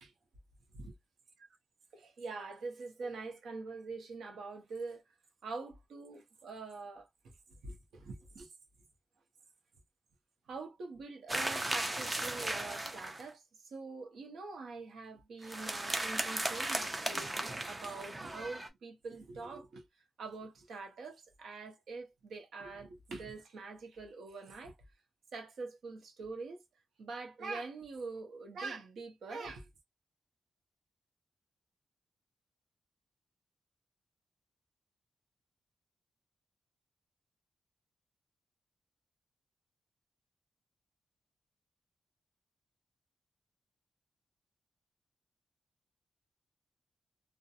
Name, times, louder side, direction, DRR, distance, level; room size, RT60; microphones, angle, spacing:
voice 1, 1.9-5.0 5.4-7.1 7.6-8.5 10.5-19.8 20.2-24.7 25.3-26.6 27.0-29.7, right 3 dB, 80° right, 0.7 m, -44 dB
sound 1, 11.3-13.3 15.4-18.7, right 1 dB, 15° right, 0.4 m, -36 dB
2.4 x 2.1 x 2.7 m
wide cardioid pair, 175°, 0 cm